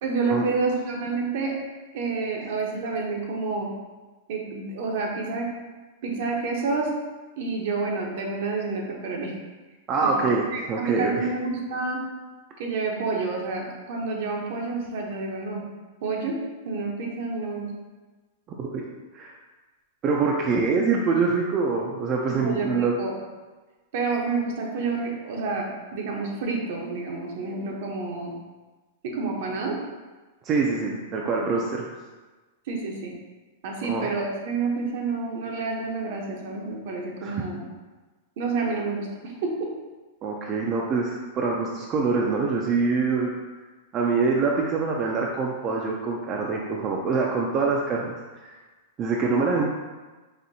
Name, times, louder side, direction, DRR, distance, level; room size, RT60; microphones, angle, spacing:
voice 1, 0.0-1.6 1.9-3.7 4.3-5.5 6.0-6.9 7.4-9.3 10.0-10.2 10.5-12.0 12.6-15.6 16.0-16.4 16.6-17.7 22.3-23.2 23.9-28.3 29.0-29.8 32.7-33.1 33.6-37.6 38.4-39.7, right 4 dB, 65° right, 0 dB, 0.8 m, -29 dB
voice 2, 9.9-11.3 18.6-18.8 19.1-19.3 20.0-22.9 30.4-31.9 33.8-34.1 37.2-37.4 40.2-43.3 43.9-48.2 48.4-48.5 49.0-49.6, right 4 dB, 35° right, -1 dB, 0.4 m, -25 dB
4.2 x 2.7 x 2.7 m, 1.2 s
hypercardioid pair, 120°, 0 cm